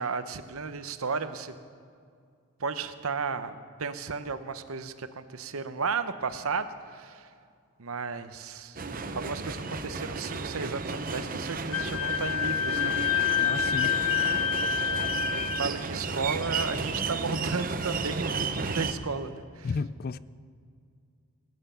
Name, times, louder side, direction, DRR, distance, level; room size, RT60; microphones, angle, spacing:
voice 1, 0.0-1.5 2.6-7.3 7.8-8.8 9.1-13.1 13.4-13.7 14.9-19.7, right 4 dB, 75° right, 0.8 m, -34 dB
sound 1, 8.8-18.9, right 4 dB, 40° right, 0.7 m, -33 dB
Wind instrument woodwind instrument, 11.7-15.7, left 9 dB, 80° left, 0.8 m, -27 dB
voice 2, 13.4-14.0 19.6-20.2, left 4 dB, 40° left, 0.3 m, -32 dB
19.0 x 9.5 x 6.9 m
head